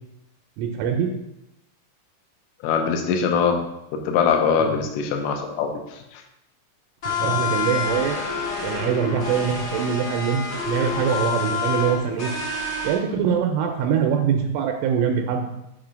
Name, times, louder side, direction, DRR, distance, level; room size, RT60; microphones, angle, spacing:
voice 1, 0.6-1.1 4.6-4.8 7.1-8.2 8.6-12.3 12.8-15.5, right 7 dB, 85° right, 3 dB, 3.0 m, -23 dB
voice 2, 2.6-3.6 3.9-5.7 6.1-6.2, left 6 dB, 85° left, 4 dB, 3.3 m, -22 dB
sound 1, 7.0-13.0, left 5 dB, 65° left, 1.1 m, -28 dB
7.4 x 2.8 x 5.0 m, 0.86 s
omnidirectional pair, 5.7 m